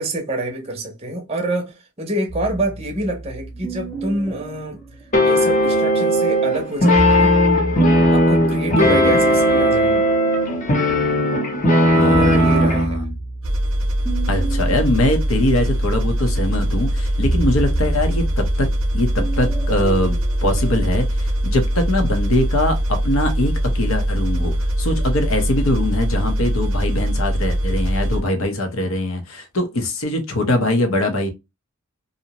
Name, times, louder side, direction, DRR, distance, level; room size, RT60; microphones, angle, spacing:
voice 1, 0.0-4.8 5.2-7.4 8.1-10.1 12.0-13.0, right 1 dB, 30° right, 0.6 m, -26 dB
sound 1, 2.3-5.8 6.8-11.2 11.6-20.9, right 3 dB, 10° left, 0.9 m, -31 dB
sound 2, 5.1-12.9, equal, 35° left, 0.7 m, -17 dB
voice 2, 8.8-9.2 11.9-13.1 14.3-18.7 18.9-31.3, left 1 dB, 75° left, 0.7 m, -22 dB
sound 3, 13.4-28.2, equal, 85° right, 0.6 m, -21 dB
2.5 x 2.1 x 2.8 m
head